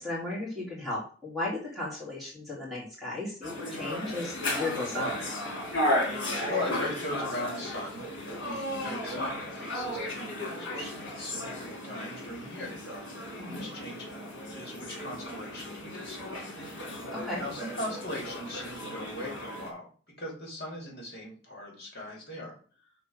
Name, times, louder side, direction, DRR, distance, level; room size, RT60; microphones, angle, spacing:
voice 1, 0.0-5.2 13.4-13.6 17.1-17.4, left 2 dB, ahead, -6 dB, 2.6 m, -35 dB
sound 1, 3.4-19.7, left 1 dB, 70° left, 2.7 m, -35 dB
voice 2, 6.5-13.2 13.4-14.1 14.5-16.3 17.4-19.9 20.2-22.6, left 1 dB, 50° left, -1 dB, 3.1 m, -39 dB
5.9 x 4.2 x 6.3 m, 0.40 s
head